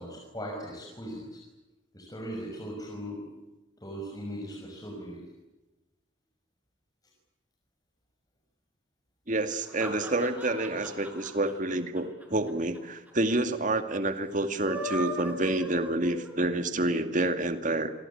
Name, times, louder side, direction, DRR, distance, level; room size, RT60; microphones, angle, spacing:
voice 1, 0.0-1.4 1.9-3.2 3.8-5.2, equal, 20° left, -2 dB, 6.3 m, -39 dB
voice 2, 9.3-17.9, right 2 dB, 40° right, 8 dB, 2.3 m, -28 dB
sound 1, 9.4-12.8 13.1-13.2 13.4-13.5 14.4-16.6, right 1 dB, 10° right, 6.9 m, -38 dB
27.5 x 23.5 x 8.7 m, 1.1 s
head